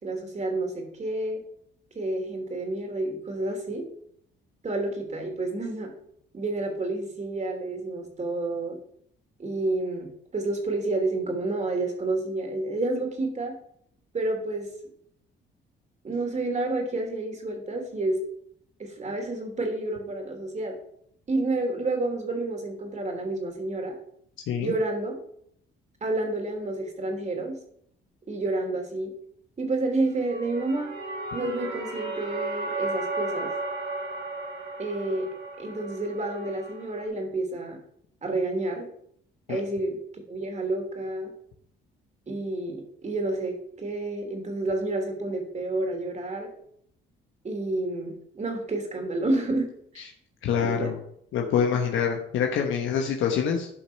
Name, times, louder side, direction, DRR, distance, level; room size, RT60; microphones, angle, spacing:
voice 1, 0.0-1.4 1.9-3.8 4.6-5.9 6.3-8.8 9.4-13.5 14.1-14.7 16.0-18.2 18.8-20.7 21.3-23.9 24.6-25.2 26.0-27.5 28.3-29.1 29.6-30.9 31.3-33.5 34.8-35.3 35.6-37.8 38.2-38.9 39.5-40.0 40.3-41.3 42.3-46.5 47.4-49.7 49.9-50.0 50.6-50.9, right 2 dB, 35° right, 3 dB, 3.1 m, -29 dB
sound 1, 30.1-37.1, right 2 dB, 55° right, 4.7 m, -34 dB
voice 2, 50.4-51.0 51.3-53.7, left 7 dB, 80° left, 2 dB, 1.2 m, -25 dB
12.0 x 5.2 x 5.7 m, 0.69 s
cardioid pair, 90°, 20 cm